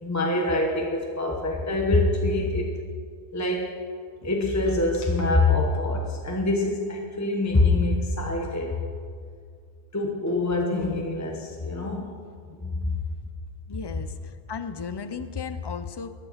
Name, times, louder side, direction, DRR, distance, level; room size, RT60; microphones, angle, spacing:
voice 1, 0.0-2.7 3.3-3.8 4.2-8.8 9.9-12.1 12.6-13.0, left 2 dB, 15° left, 1 dB, 1.0 m, -25 dB
voice 2, 13.7-16.1, left 5 dB, 35° left, 11 dB, 0.5 m, -34 dB
13.5 x 9.8 x 5.7 m, 2.1 s
omnidirectional pair, 1.1 m